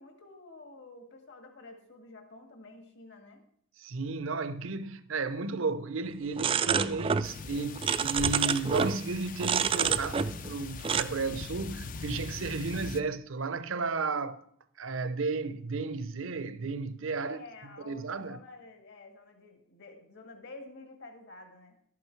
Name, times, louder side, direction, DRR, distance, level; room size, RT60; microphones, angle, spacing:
voice 1, 0.0-3.4 17.2-21.8, left 2 dB, 55° left, 1.8 m, -50 dB
voice 2, 3.8-14.4 14.8-17.4 17.8-18.4, right 3 dB, 70° right, 0.7 m, -33 dB
sound 1, 6.4-7.3 7.6-9.0 9.4-10.5 10.8-11.0, right 6 dB, 25° right, 0.3 m, -28 dB
sound 2, 7.2-13.0, left 4 dB, 40° left, 0.4 m, -41 dB
12.0 x 8.6 x 4.6 m
head